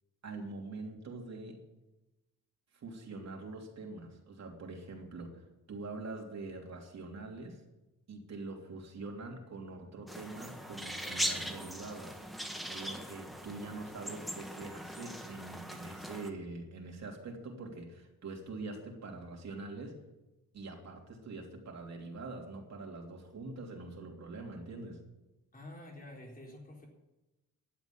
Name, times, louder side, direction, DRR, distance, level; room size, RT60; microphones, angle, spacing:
voice 1, 0.2-1.6 2.7-7.6 8.1-12.2 12.6-19.9 20.5-25.0, right 3 dB, 50° right, 1 dB, 3.2 m, -44 dB
sound 1, 10.1-16.3, equal, ahead, 1.5 m, -40 dB
voice 2, 25.5-26.9, left 1 dB, 25° left, -1 dB, 4.1 m, -48 dB
11.5 x 8.2 x 9.8 m, 1.0 s
cardioid pair, 130°, 35 cm